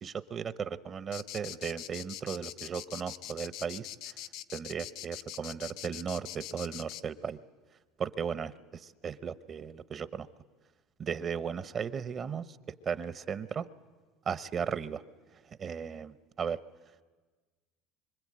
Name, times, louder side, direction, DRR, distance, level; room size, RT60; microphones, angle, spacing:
voice 1, 0.0-4.1 4.5-7.4 8.0-10.3 11.0-12.5 12.8-13.6 14.3-15.0 15.6-16.6, right 7 dB, 35° right, 14 dB, 0.8 m, -36 dB
sound 1, 1.1-7.0, left 12 dB, 70° left, 0.9 m, -43 dB
24.5 x 24.5 x 8.8 m, 1.4 s
supercardioid pair, 120°, 0 cm